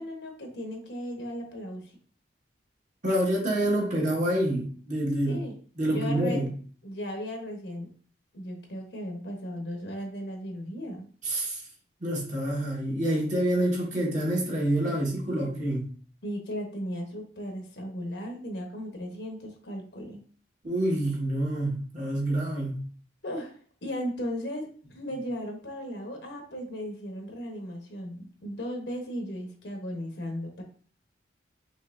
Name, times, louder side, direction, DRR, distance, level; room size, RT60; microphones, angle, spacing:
voice 1, 0.0-1.9 5.3-5.6 5.9-6.4 6.8-7.9 8.3-11.1 14.8-15.0 15.4-15.5 16.2-20.2 23.2-30.6, equal, 65° left, 2 dB, 1.1 m, -36 dB
voice 2, 3.0-5.4 5.8-6.5 11.2-11.6 12.0-15.8 20.6-22.8, right 1 dB, 40° right, -3 dB, 1.4 m, -27 dB
5.3 x 3.0 x 2.6 m, 0.43 s
head